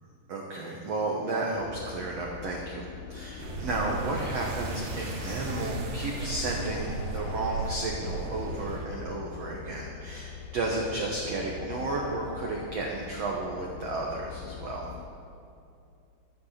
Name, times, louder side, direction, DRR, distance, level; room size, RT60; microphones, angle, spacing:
voice 1, 0.3-2.8 3.1-14.9, right 2 dB, 75° right, -1 dB, 1.5 m, -33 dB
sound 1, 1.6-15.1, left 8 dB, 85° left, 2.0 m, -43 dB
sound 2, 3.4-8.9, right 3 dB, 90° right, 3.8 m, -35 dB
12.0 x 12.0 x 5.8 m, 2.5 s
omnidirectional pair, 4.7 m